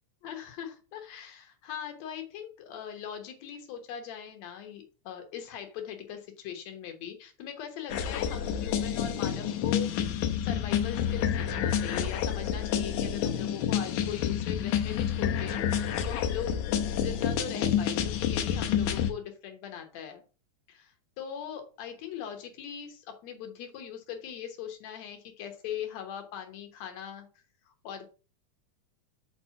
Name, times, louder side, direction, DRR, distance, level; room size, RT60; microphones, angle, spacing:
voice 1, 0.2-9.9 10.4-16.6 17.0-20.2 20.7-27.3 27.7-28.1, left 9 dB, 70° left, 5 dB, 2.4 m, -40 dB
sound 1, 7.9-19.1, left 9 dB, 90° left, 2.2 m, -29 dB
5.3 x 4.4 x 5.7 m, 0.36 s
omnidirectional pair, 3.4 m